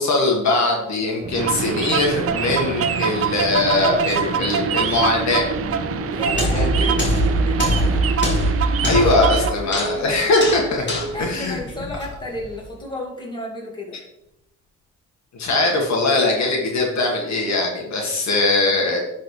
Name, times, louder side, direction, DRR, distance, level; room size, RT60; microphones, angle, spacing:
voice 1, 0.0-5.5 6.5-6.9 8.8-10.8 11.2-11.6 15.4-19.0, left 2 dB, 65° left, 0 dB, 1.7 m, -21 dB
sound 1, 1.2-8.1, right 2 dB, 20° right, 1.0 m, -33 dB
sound 2, 1.4-9.5, right 7 dB, 50° right, 0.6 m, -24 dB
voice 2, 6.1-8.1 8.8-10.3 10.6-14.0, left 1 dB, 15° left, -2 dB, 2.2 m, -33 dB
sound 3, 6.2-12.5, right 1 dB, 40° left, 2.1 m, -23 dB
10.0 x 4.1 x 3.2 m, 0.86 s
cardioid pair, 90°, 30 cm